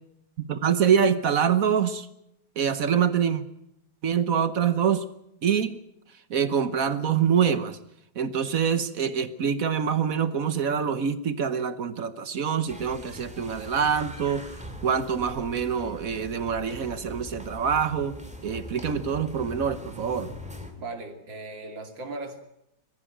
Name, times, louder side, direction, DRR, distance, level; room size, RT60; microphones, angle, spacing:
voice 1, 0.4-2.1 2.6-3.4 4.0-5.1 5.4-5.8 6.3-7.8 8.1-14.5 14.8-18.2 18.4-20.3, right 7 dB, 55° right, 13 dB, 1.3 m, -25 dB
sound 1, 12.7-20.7, equal, 5° right, 2.6 m, -41 dB
voice 2, 20.8-22.4, right 2 dB, 85° right, 5 dB, 3.3 m, -37 dB
21.0 x 15.0 x 8.9 m, 0.81 s
omnidirectional pair, 2.0 m